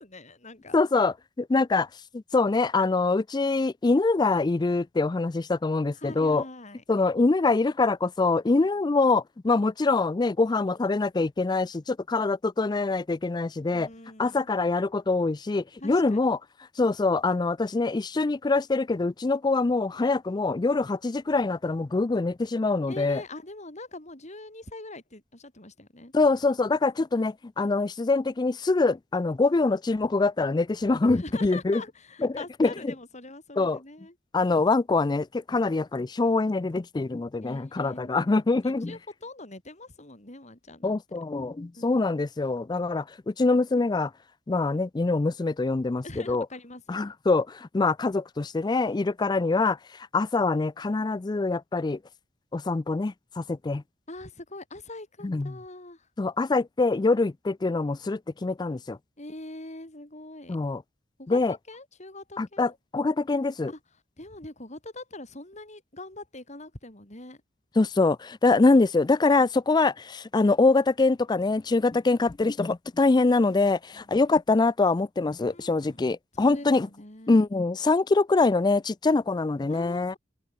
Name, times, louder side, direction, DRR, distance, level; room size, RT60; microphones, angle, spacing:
voice 1, 0.0-0.8 5.9-6.8 8.6-8.7 13.7-14.5 15.8-16.2 22.9-26.1 31.1-34.2 37.4-41.0 41.7-42.1 46.0-47.0 54.1-56.1 59.2-60.6 61.2-62.8 63.7-63.8 64.2-67.4 73.9-74.2 75.5-76.1 76.3-77.5 79.7-80.2, left 2 dB, 40° left, 6.9 m, -43 dB
voice 2, 0.7-1.9 2.1-6.4 6.9-13.9 14.2-16.4 16.8-23.2 26.1-31.8 32.2-32.9 33.6-33.8 34.3-39.0 40.8-44.1 44.5-46.5 46.9-49.8 50.1-52.0 52.5-53.8 55.2-55.5 56.2-59.0 60.5-60.8 61.3-61.5 62.4-63.7 67.8-76.9 77.3-80.2, left 3 dB, 25° left, 0.4 m, -24 dB
open air
head